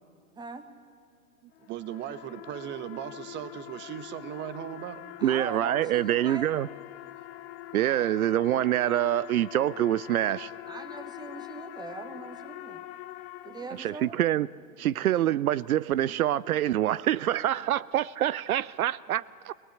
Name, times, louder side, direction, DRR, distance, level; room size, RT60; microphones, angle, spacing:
voice 1, 0.3-0.7 5.2-6.5 10.7-12.8 13.4-14.2, right 4 dB, 10° right, 1.6 m, -41 dB
voice 2, 1.4-5.0 13.5-13.9 16.1-16.2, right 11 dB, 25° right, 1.1 m, -39 dB
sound 1, 1.5-14.3, left 14 dB, 45° left, 1.0 m, -44 dB
voice 3, 5.2-6.7 7.7-10.5 13.8-14.5 14.8-19.5, right 12 dB, 75° right, 0.6 m, -26 dB
20.0 x 20.0 x 8.4 m
hypercardioid pair, 120°, 43 cm